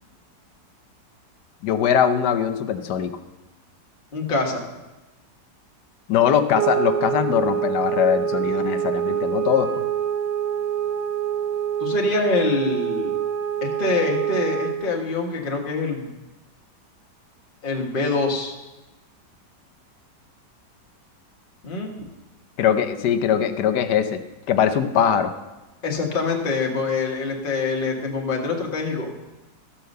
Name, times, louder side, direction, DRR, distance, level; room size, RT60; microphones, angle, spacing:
voice 1, 1.6-3.1 6.1-9.8 22.6-24.2 24.5-25.3, left 8 dB, 70° left, 9 dB, 1.3 m, -21 dB
voice 2, 4.1-4.6 11.8-13.1 13.8-16.1 17.6-18.5 21.6-22.1 25.8-29.1, left 3 dB, 30° left, 0 dB, 1.5 m, -25 dB
sound 1, 6.5-14.9, right 9 dB, 80° right, 1.8 m, -25 dB
14.0 x 5.7 x 6.6 m, 1.1 s
omnidirectional pair, 1.9 m